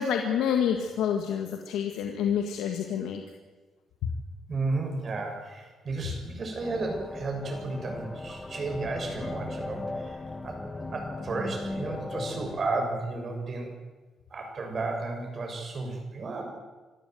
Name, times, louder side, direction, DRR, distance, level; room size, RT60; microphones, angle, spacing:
voice 1, 0.0-3.2, left 8 dB, 85° left, 4 dB, 2.0 m, -28 dB
voice 2, 4.5-10.6 10.9-13.7 14.3-16.4, right 3 dB, 45° right, 3 dB, 7.2 m, -33 dB
sound 1, 6.6-12.7, left 2 dB, 20° left, 1.9 m, -37 dB
26.5 x 14.0 x 9.5 m, 1.3 s
cardioid pair, 90°, 0 cm